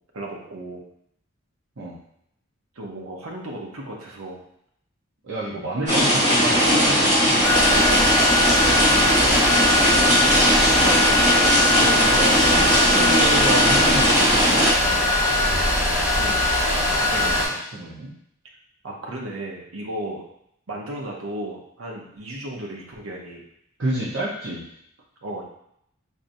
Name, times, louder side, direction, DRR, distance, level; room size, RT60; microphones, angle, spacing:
voice 1, 0.1-0.8 2.8-4.4 8.9-11.7 16.2-16.5 18.8-20.3 20.7-23.4 25.2-25.4, right 1 dB, 90° right, -1 dB, 0.9 m, -35 dB
voice 2, 5.2-8.3 11.7-15.4 16.7-18.1 23.8-24.6, right 2 dB, 60° right, -6 dB, 0.9 m, -30 dB
sound 1, 5.9-14.7, equal, 35° right, 1.3 m, -19 dB
sound 2, 7.4-17.4, left 1 dB, 10° right, 1.0 m, -21 dB
4.7 x 2.7 x 2.7 m, 0.73 s
head